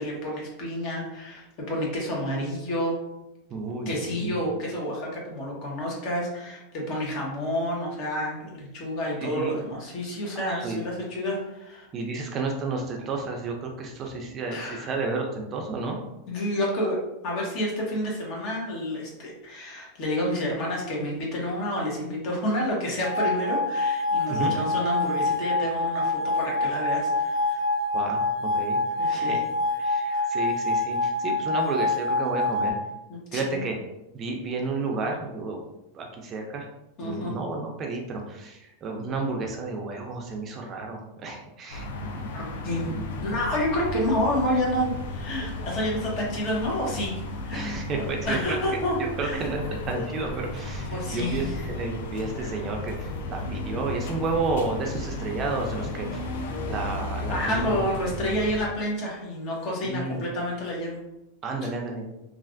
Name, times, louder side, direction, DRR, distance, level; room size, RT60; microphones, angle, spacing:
voice 1, 0.0-3.0 3.9-11.9 14.5-14.9 16.3-27.6 29.0-29.4 30.1-30.3 33.1-33.7 37.0-37.3 42.3-47.2 47.4-47.8 48.2-49.5 50.9-51.6 57.3-61.0, equal, 45° left, -2 dB, 1.1 m, -29 dB
voice 2, 3.5-3.9 4.2-4.4 9.2-9.5 10.3-10.8 11.9-16.0 24.3-24.5 27.9-28.8 29.1-29.4 29.8-32.8 33.3-33.7 34.1-35.7 35.9-36.7 37.0-42.3 42.9-43.0 47.5-56.3 56.6-57.9 59.8-60.2 61.4-62.0, right 3 dB, 30° right, 1 dB, 0.5 m, -31 dB
sound 1, 23.0-32.7, left 2 dB, 5° left, 1.0 m, -26 dB
sound 2, 41.7-58.7, left 2 dB, 80° left, 0.5 m, -34 dB
3.2 x 2.4 x 2.5 m, 0.91 s
supercardioid pair, 140°, 0 cm